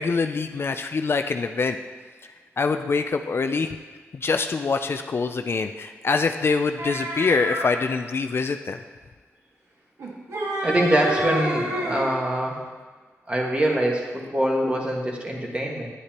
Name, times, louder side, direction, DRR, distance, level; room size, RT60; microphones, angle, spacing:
voice 1, 0.0-1.8 2.6-3.7 4.1-8.8, left 4 dB, 50° left, 7 dB, 0.4 m, -24 dB
sound 1, 6.8-7.7 10.0-12.1, equal, 80° right, 1.7 m, -29 dB
voice 2, 10.6-12.6 13.3-15.9, right 1 dB, 20° right, -1 dB, 1.7 m, -24 dB
9.8 x 9.6 x 3.0 m, 1.4 s
cardioid pair, 85°, 5 cm